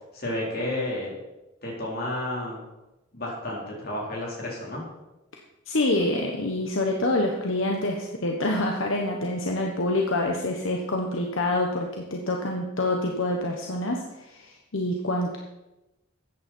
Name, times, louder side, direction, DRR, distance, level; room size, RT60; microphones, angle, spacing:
voice 1, 0.1-1.1 1.6-2.6 3.1-4.8, left 1 dB, 50° left, -3 dB, 4.4 m, -31 dB
voice 2, 5.7-15.4, left 1 dB, 75° left, 1 dB, 1.3 m, -26 dB
13.5 x 8.8 x 4.6 m, 0.97 s
head